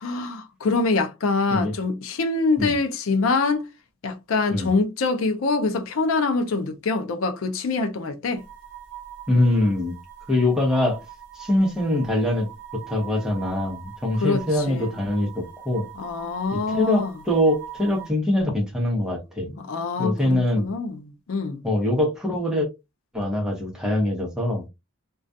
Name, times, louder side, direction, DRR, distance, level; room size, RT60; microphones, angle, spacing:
voice 1, 0.0-3.7 4.0-8.4 14.2-14.4 14.7-14.9 16.0-17.1 19.6-21.6, left 3 dB, 65° left, 0.4 m, -24 dB
sound 1, 8.4-18.1, right 10 dB, 55° right, 0.6 m, -42 dB
voice 2, 9.3-9.9 10.3-11.0 11.3-12.5 12.7-15.9 16.5-19.5 20.0-20.7 21.6-22.7 23.1-24.6, left 1 dB, 5° right, 0.7 m, -23 dB
2.3 x 2.2 x 2.5 m
head